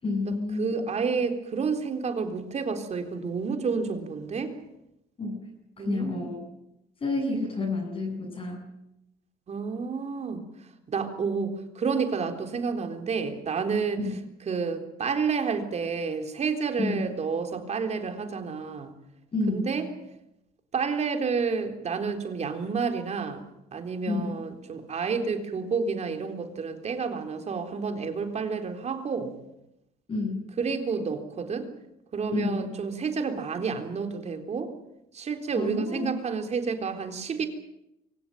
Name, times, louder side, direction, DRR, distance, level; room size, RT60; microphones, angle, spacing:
voice 1, 0.0-0.8 5.2-5.4 5.8-6.4 7.0-8.7 14.0-14.2 16.8-17.0 19.3-19.7 24.1-24.4 30.1-30.4 32.3-32.7 35.6-36.1, left 3 dB, 35° left, 0 dB, 7.7 m, -29 dB
voice 2, 0.6-4.5 5.8-6.3 9.5-10.4 10.9-14.1 14.5-18.9 19.5-19.9 20.7-23.4 23.7-29.3 30.6-31.7 32.1-34.7 35.1-37.5, right 5 dB, 40° right, 6 dB, 3.8 m, -30 dB
24.0 x 17.0 x 9.2 m, 0.86 s
cardioid pair, 110°, 17 cm